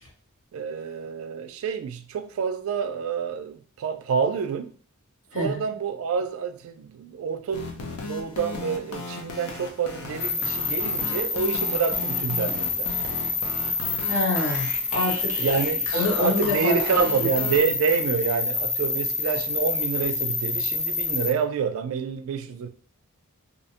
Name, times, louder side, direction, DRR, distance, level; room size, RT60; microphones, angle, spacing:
voice 1, 0.5-4.7 5.4-13.0 15.4-22.7, right 6 dB, 65° right, 0.3 m, -28 dB
sound 1, 7.5-17.6, left 3 dB, 85° left, 0.5 m, -36 dB
sound 2, 10.2-21.3, left 3 dB, 35° left, 0.6 m, -27 dB
voice 2, 14.1-15.5 15.9-17.3, left 1 dB, 60° left, 1.0 m, -26 dB
2.6 x 2.1 x 2.8 m
head